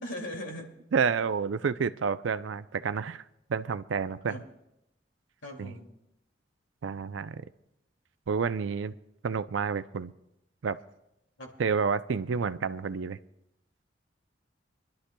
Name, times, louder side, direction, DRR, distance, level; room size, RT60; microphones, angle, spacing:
voice 1, 0.0-0.7 4.3-4.4 5.4-5.9 11.4-11.5, left 1 dB, 85° left, 1 dB, 2.5 m, -39 dB
voice 2, 0.9-3.2 3.5-4.4 5.6-5.7 6.8-7.4 8.3-8.9 9.2-10.1 10.6-10.8 11.6-13.2, right 6 dB, 85° right, 13 dB, 0.5 m, -29 dB
27.0 x 11.5 x 2.3 m, 0.84 s
head